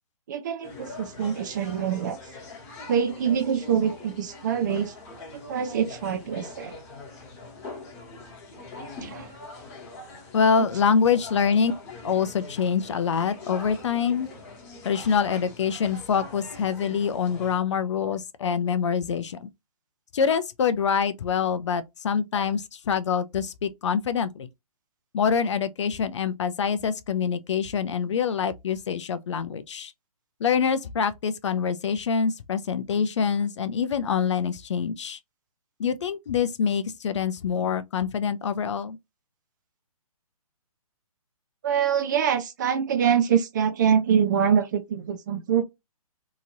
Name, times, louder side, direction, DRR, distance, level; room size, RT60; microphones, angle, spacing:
voice 1, 0.3-2.2 2.9-4.9 5.3-6.8 9.0-9.3 10.6-10.7 41.6-45.6, right 8 dB, 30° right, 0.5 m, -25 dB
sound 1, 0.6-17.6, left 2 dB, 25° left, 1.2 m, -43 dB
voice 2, 10.3-11.7 12.0-14.3 14.8-19.5 20.1-24.5 25.1-29.9 30.4-35.2 35.8-39.0, left 6 dB, 50° left, 0.4 m, -25 dB
2.9 x 2.6 x 2.5 m
hypercardioid pair, 150°, 19 cm